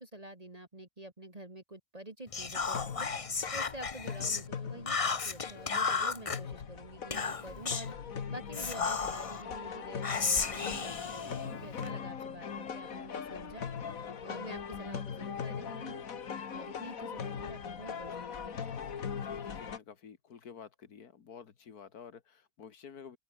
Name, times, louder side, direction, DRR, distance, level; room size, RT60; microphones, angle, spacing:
voice 1, 0.0-3.1 3.5-7.9 8.3-13.6 14.2-16.0 16.5-18.6, right 1 dB, 25° right, 2.4 m, -47 dB
Whispering, 2.3-4.4 4.9-6.4 7.1-7.9 8.5-9.4 10.0-11.9, left 5 dB, 30° left, 0.7 m, -33 dB
sound 1, 2.6-19.8, left 7 dB, 65° left, 1.9 m, -40 dB
voice 2, 19.1-23.2, left 7 dB, 90° left, 2.1 m, -51 dB
omnidirectional pair, 1.6 m